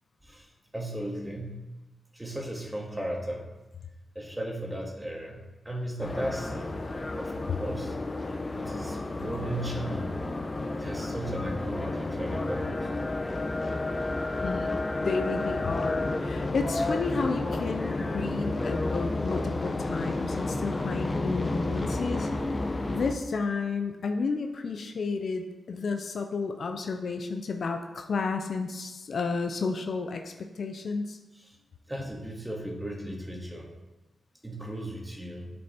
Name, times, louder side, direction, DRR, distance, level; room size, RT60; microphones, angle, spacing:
voice 1, 0.7-1.6 2.1-3.5 4.2-6.7 7.2-8.0 8.2-10.2 10.8-12.9 31.9-33.7 34.4-35.5, right 1 dB, 15° right, 0 dB, 1.9 m, -36 dB
sound 1, 6.0-23.1, left 2 dB, 35° left, 0.8 m, -31 dB
voice 2, 14.4-14.7 15.0-22.3 22.7-31.2, left 4 dB, 70° left, 5 dB, 0.7 m, -32 dB
7.8 x 5.4 x 4.4 m, 1.1 s
supercardioid pair, 45°, 0 cm